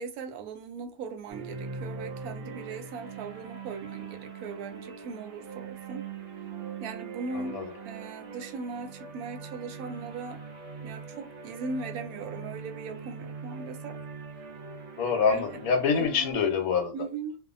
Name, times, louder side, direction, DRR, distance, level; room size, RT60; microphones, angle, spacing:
voice 1, 0.0-6.1 6.8-10.4 10.8-14.0 15.3-15.5 15.9-16.4 16.9-17.4, right 4 dB, 85° right, 1.1 m, -39 dB
sound 1, 1.3-16.3, right 5 dB, 60° right, 0.8 m, -41 dB
voice 2, 7.3-7.6 15.0-16.9, left 6 dB, 75° left, 1.2 m, -26 dB
2.7 x 2.3 x 2.5 m
omnidirectional pair, 1.5 m